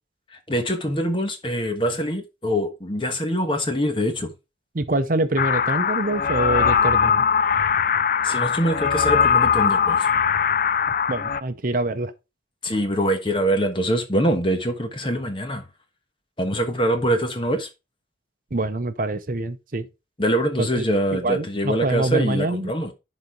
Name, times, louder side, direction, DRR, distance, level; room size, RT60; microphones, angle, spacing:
voice 1, 0.3-4.3 8.2-10.1 12.6-15.7 16.4-17.7 20.2-22.9, equal, 30° left, 1.3 m, -24 dB
voice 2, 4.7-7.2 11.1-12.1 18.5-19.9 20.6-20.8 21.1-22.7, right 2 dB, 50° right, 0.7 m, -25 dB
sound 1, 5.4-11.4, left 7 dB, 50° left, 0.4 m, -20 dB
11.0 x 4.1 x 4.6 m
head